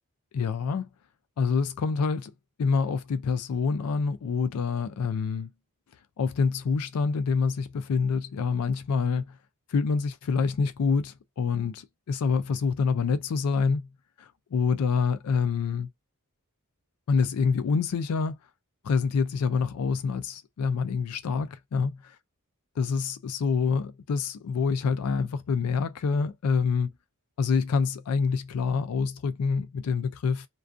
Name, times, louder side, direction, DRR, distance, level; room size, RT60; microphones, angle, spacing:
voice 1, 0.3-0.9 1.4-2.3 2.6-5.5 6.2-9.2 9.7-13.9 14.2-15.9 17.1-18.3 18.8-22.0 22.8-26.9 27.4-30.5, left 5 dB, 80° left, 0.4 m, -26 dB
2.4 x 2.3 x 2.4 m
head